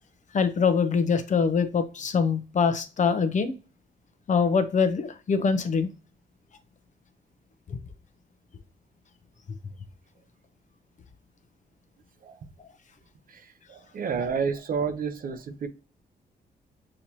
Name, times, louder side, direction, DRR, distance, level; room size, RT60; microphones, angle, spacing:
voice 1, 0.3-3.5 4.3-5.9, left 5 dB, 45° left, 0.7 m, -24 dB
voice 2, 13.7-15.7, right 6 dB, 55° right, 0.7 m, -30 dB
6.3 x 2.9 x 2.8 m
cardioid pair, 95°, 17 cm